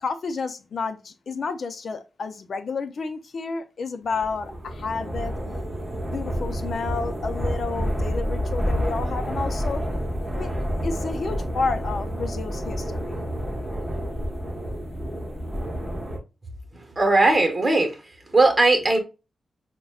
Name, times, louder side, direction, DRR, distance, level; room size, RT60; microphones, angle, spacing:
voice 1, 0.0-5.3 5.9-9.8 10.3-10.5 10.8-13.2, left 4 dB, 60° left, 0.5 m, -31 dB
sound 1, 4.1-16.2, equal, 10° right, 1.2 m, -29 dB
voice 2, 17.0-17.9 18.3-19.0, right 2 dB, 30° right, 1.1 m, -18 dB
6.1 x 2.2 x 2.3 m
cardioid pair, 80°, 0 cm